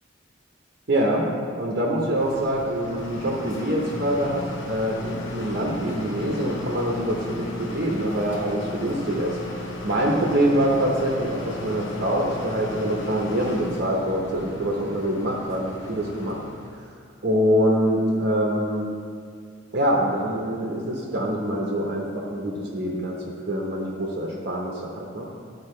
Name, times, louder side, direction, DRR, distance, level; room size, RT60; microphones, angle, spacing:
voice 1, 0.9-1.2 1.6-9.6 9.8-16.4 17.2-18.9 19.7-23.1 23.5-25.2, equal, 55° right, -3 dB, 1.0 m, -25 dB
sound 1, 2.2-16.8, left 1 dB, 70° left, 0.9 m, -36 dB
11.5 x 4.5 x 3.2 m, 2.3 s
head